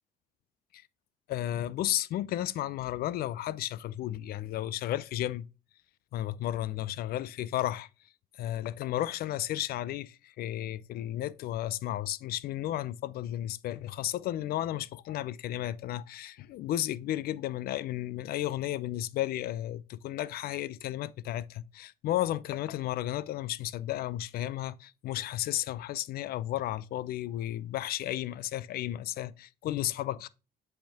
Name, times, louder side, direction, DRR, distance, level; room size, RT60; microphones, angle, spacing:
voice 1, 1.3-5.5 6.1-7.9 8.4-30.3, left 13 dB, 65° left, 0.5 m, -33 dB
7.7 x 3.5 x 3.5 m
cardioid pair, 110°, 17 cm